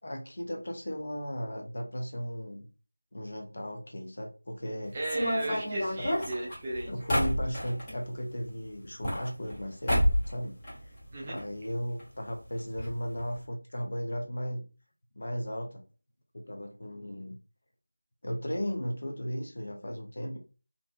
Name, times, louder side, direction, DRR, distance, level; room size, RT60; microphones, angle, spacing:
voice 1, 0.0-2.7 3.1-5.0 5.5-6.2 6.8-10.5 10.8-11.0 11.2-14.6 15.1-15.8 16.3-17.3 18.2-20.4, equal, 45° left, 2 dB, 0.6 m, -36 dB
voice 2, 4.9-6.9 11.1-11.4, right 1 dB, 20° right, -2 dB, 0.3 m, -35 dB
sound 1, 5.0-8.0 8.8-9.6 9.9-10.3 10.6-11.4 11.7-11.8 12.0-12.1 12.8-12.9 13.2-13.4, equal, 15° left, 0.8 m, -29 dB
2.6 x 2.1 x 2.5 m, 0.33 s
figure-of-eight pair, 170°, 0 cm